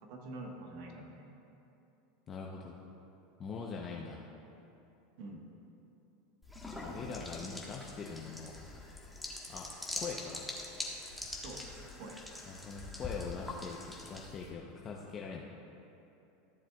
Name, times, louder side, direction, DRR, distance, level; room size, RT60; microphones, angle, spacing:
voice 1, 0.0-1.2 5.2-5.5 11.4-11.6 12.0-12.2, right 2 dB, 60° right, 1 dB, 1.3 m, -46 dB
voice 2, 2.3-2.8 3.4-4.2 6.7-8.6 9.5-10.5 12.5-15.4, left 5 dB, 35° left, -2 dB, 0.8 m, -43 dB
sound 1, 6.4-14.5, left 2 dB, 5° left, 1.3 m, -44 dB
14.0 x 7.2 x 2.4 m, 2.9 s
hypercardioid pair, 105°, 0 cm